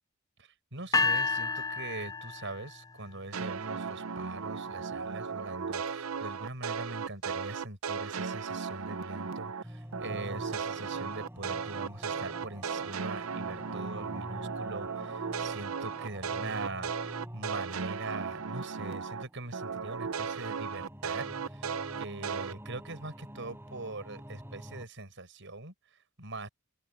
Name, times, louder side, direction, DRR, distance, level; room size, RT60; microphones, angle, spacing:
voice 1, 0.4-21.7 22.0-26.5, right 2 dB, 60° right, 7.5 m, -42 dB
sound 1, 0.9-3.0, left 4 dB, 15° left, 0.7 m, -30 dB
sound 2, 3.3-9.6 9.9-19.2 19.5-22.5, right 5 dB, 80° right, 0.7 m, -36 dB
sound 3, 9.6-24.9, equal, 10° right, 6.6 m, -47 dB
open air
head